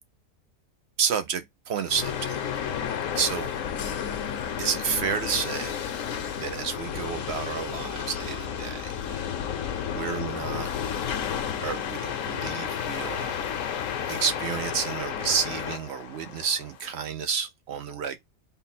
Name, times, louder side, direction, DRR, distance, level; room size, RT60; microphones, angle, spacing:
voice 1, 1.0-2.4 2.8-2.9 3.2-3.5 4.6-5.8 6.4-8.8 9.1-9.3 9.9-10.7 11.6-13.3 14.1-18.2, right 7 dB, 65° right, 0.7 m, -30 dB
sound 1, 1.9-17.0, left 8 dB, 70° left, 1.0 m, -32 dB
3.9 x 2.1 x 4.0 m
omnidirectional pair, 1.5 m